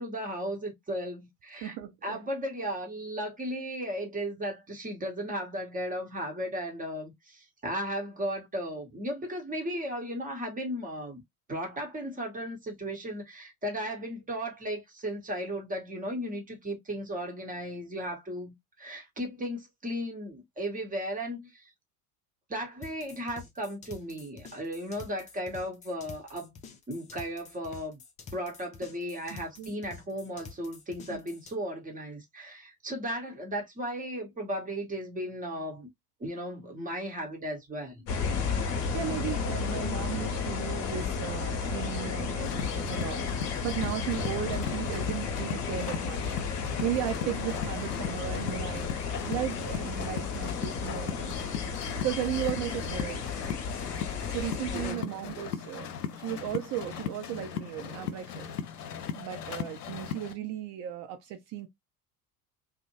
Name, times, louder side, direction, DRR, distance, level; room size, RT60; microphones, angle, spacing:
voice 1, 0.0-11.2 11.5-21.7 22.5-26.6 26.9-28.0 28.3-35.9 36.2-38.1 54.7-55.2, equal, 15° right, 1.0 m, -35 dB
voice 2, 1.6-2.2 29.3-29.7 31.1-31.2 38.3-38.5 38.9-46.4 46.8-48.9 49.3-51.4 52.0-53.2 54.3-55.9 56.1-58.5 59.2-61.7, right 11 dB, 40° right, 0.6 m, -35 dB
sound 1, 22.8-31.5, left 5 dB, 15° left, 0.4 m, -48 dB
sound 2, 38.1-54.9, left 5 dB, 40° left, 0.8 m, -33 dB
sound 3, 42.4-60.3, left 8 dB, 75° left, 0.6 m, -38 dB
2.5 x 2.0 x 2.9 m
figure-of-eight pair, 65°, 46 cm